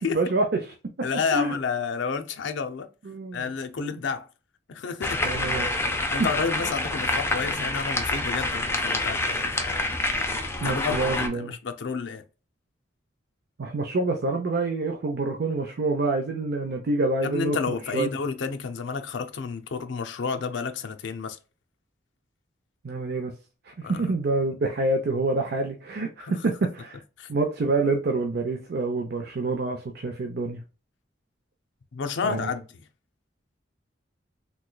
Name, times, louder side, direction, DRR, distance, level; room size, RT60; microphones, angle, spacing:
voice 1, 0.1-0.7 1.3-1.6 3.1-3.5 5.2-5.7 10.6-11.5 13.6-17.6 17.9-18.1 22.8-23.3 23.7-27.0 27.3-30.6 32.2-32.5, right 3 dB, 55° right, 0.5 m, -27 dB
voice 2, 1.0-2.9 3.3-4.3 4.7-5.5 6.1-9.8 10.6-12.2 17.2-21.4 23.8-24.1 26.2-26.4 27.2-27.3 31.9-32.6, left 5 dB, 70° left, 0.5 m, -30 dB
sound 1, 5.0-11.3, left 2 dB, 15° left, 0.5 m, -27 dB
3.5 x 3.1 x 2.2 m
head